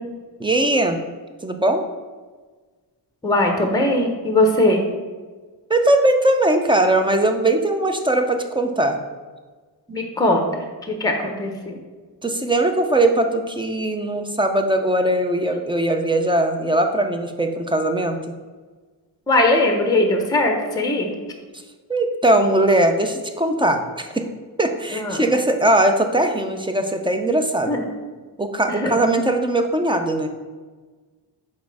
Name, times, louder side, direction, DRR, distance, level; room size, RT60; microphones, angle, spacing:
voice 1, 0.4-1.0 1.4-1.8 5.7-9.0 12.2-18.2 21.9-24.1 24.6-27.8 28.4-30.3, right 1 dB, 10° right, 5 dB, 0.4 m, -20 dB
voice 2, 3.2-4.8 9.9-10.4 10.9-11.8 19.3-21.1 24.9-25.2 27.7-27.9 28.7-28.9, left 1 dB, 10° left, 3 dB, 0.7 m, -20 dB
6.3 x 4.2 x 4.7 m, 1.4 s
wide cardioid pair, 170°, 43 cm